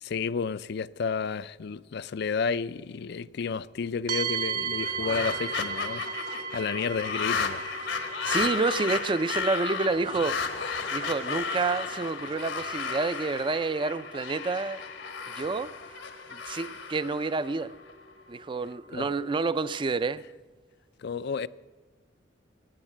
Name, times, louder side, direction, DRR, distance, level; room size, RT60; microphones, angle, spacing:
voice 1, 0.0-6.0 6.5-7.6 18.9-19.1 21.0-21.5, left 5 dB, 60° left, 0.4 m, -31 dB
sound 1, 4.1-19.8, right 5 dB, 55° right, 1.1 m, -39 dB
sound 2, 4.7-17.9, left 5 dB, 80° left, 1.4 m, -34 dB
voice 2, 8.3-10.4 10.9-14.8 15.3-15.7 16.3-17.7 18.3-20.2, right 3 dB, 25° right, 0.4 m, -29 dB
16.5 x 9.0 x 7.3 m
head